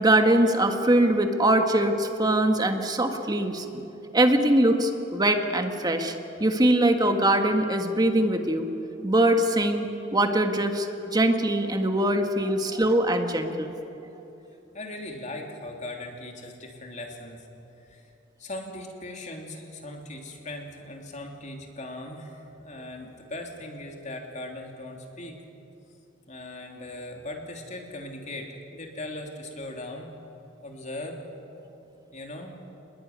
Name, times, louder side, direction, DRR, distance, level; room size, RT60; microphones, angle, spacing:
voice 1, 0.0-3.8 4.1-6.1 6.4-8.7 9.0-9.9 10.1-13.7, right 1 dB, 20° right, 5 dB, 1.7 m, -22 dB
voice 2, 14.7-17.5 17.9-18.0 18.4-25.4 26.3-30.1 30.6-31.2 32.1-32.6, left 1 dB, 40° left, 2 dB, 3.2 m, -39 dB
28.0 x 21.0 x 9.6 m, 3.0 s
head